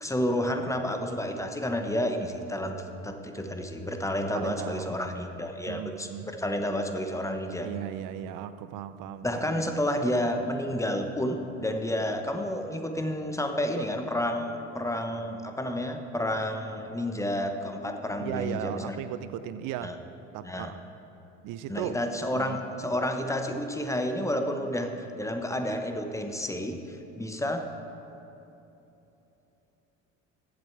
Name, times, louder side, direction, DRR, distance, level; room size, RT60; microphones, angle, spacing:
voice 1, 0.0-7.7 9.2-18.9 19.8-20.0 20.4-20.7 21.7-27.7, left 1 dB, 10° left, 6 dB, 1.0 m, -30 dB
voice 2, 4.3-5.0 5.7-6.3 7.6-9.4 18.2-20.0 20.3-20.8 21.4-22.0 22.3-22.6, right 11 dB, 60° right, 13 dB, 0.6 m, -36 dB
7.7 x 7.6 x 8.0 m, 3.0 s
hypercardioid pair, 70°, 37 cm